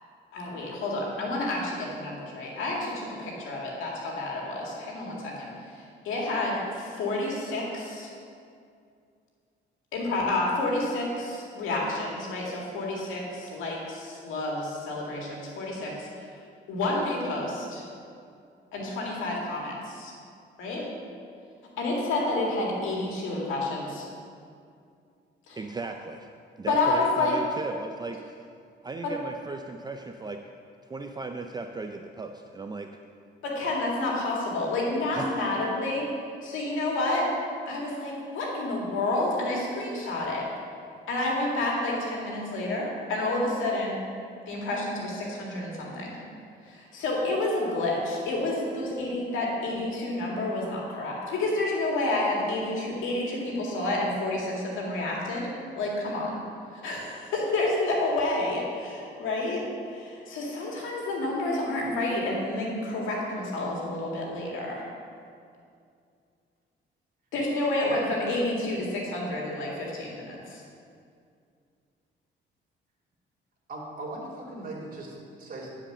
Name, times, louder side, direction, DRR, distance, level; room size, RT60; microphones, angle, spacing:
voice 1, 0.3-8.1 9.9-16.4 16.7-17.9 18.7-20.1 20.6-20.9 21.8-24.1 25.5-25.6 26.7-27.3 29.0-29.1 33.4-36.1 36.4-37.3 37.7-40.5 41.1-44.0 44.5-46.2 46.6-55.5 55.8-56.4 56.7-64.9 67.3-70.6, left 2 dB, 90° left, -2 dB, 2.2 m, -29 dB
voice 2, 25.6-26.3 26.6-28.5 28.8-30.4 30.8-33.0 35.1-35.6, right 3 dB, 20° right, 5 dB, 0.4 m, -36 dB
voice 3, 67.8-68.2 73.7-75.7, right 2 dB, 45° right, -2 dB, 2.5 m, -38 dB
10.0 x 5.0 x 6.7 m, 2.4 s
cardioid pair, 90°, 20 cm